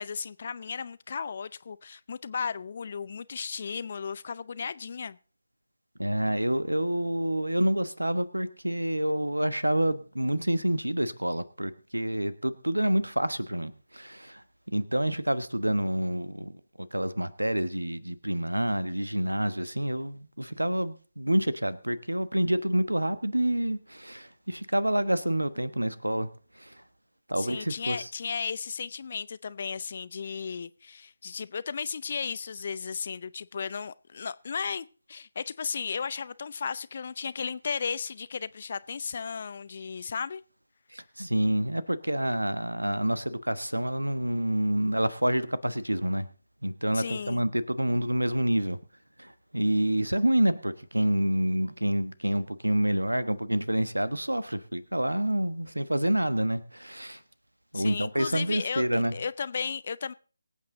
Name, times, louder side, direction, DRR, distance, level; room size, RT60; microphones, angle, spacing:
voice 1, 0.0-5.2 27.4-40.4 46.9-47.4 57.7-60.1, left 6 dB, 40° left, 0.6 m, -35 dB
voice 2, 6.0-26.3 26.6-26.8 27.3-28.1 40.9-46.3 46.6-48.8 49.2-57.2 57.7-59.1, right 1 dB, 85° right, 1.2 m, -28 dB
23.5 x 8.5 x 3.9 m
figure-of-eight pair, 155°, 0 cm